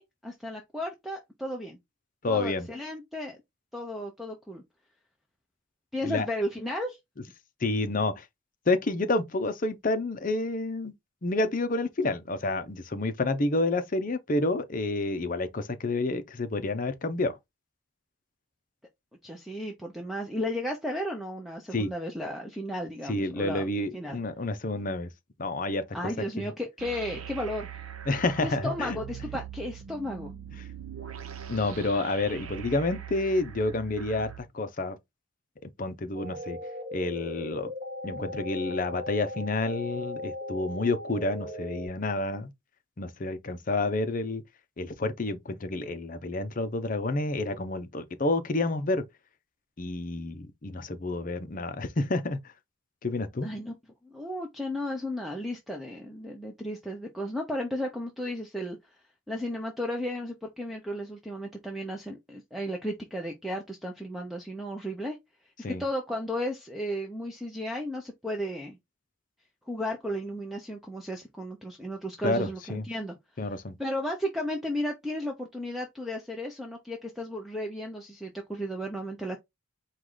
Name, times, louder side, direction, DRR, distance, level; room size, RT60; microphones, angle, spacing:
voice 1, 0.0-1.8 2.3-3.4 3.7-4.6 5.9-7.0 19.2-23.7 23.9-24.2 25.9-27.8 28.4-30.3 53.4-53.8 54.0-58.8 59.3-65.2 65.8-68.8 69.7-73.1 73.8-79.4, equal, ahead, 0.6 m, -34 dB
voice 2, 2.2-2.7 6.0-6.3 7.6-8.3 8.7-10.9 11.2-17.4 21.7-21.9 23.0-25.1 25.4-26.1 26.4-26.5 28.1-29.0 30.6-30.7 31.5-35.0 35.6-36.6 36.9-37.7 38.0-42.5 43.0-44.4 44.8-49.0 49.8-52.4 53.0-53.5 65.6-65.8 72.2-72.9 73.4-73.8, left 2 dB, 40° left, 0.6 m, -29 dB
sound 1, 26.8-34.4, right 8 dB, 90° right, 0.8 m, -41 dB
sound 2, 36.1-41.9, left 1 dB, 30° right, 2.2 m, -38 dB
4.7 x 2.4 x 3.7 m
head